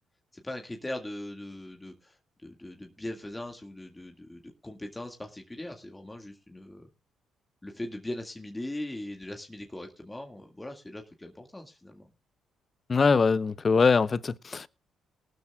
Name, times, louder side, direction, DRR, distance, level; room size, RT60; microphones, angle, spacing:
voice 1, 0.3-6.9 7.6-12.1, left 1 dB, 15° left, 2.0 m, -40 dB
voice 2, 12.9-14.7, left 4 dB, 35° left, 0.7 m, -23 dB
19.0 x 13.0 x 2.4 m
cardioid pair, 90°, 0 cm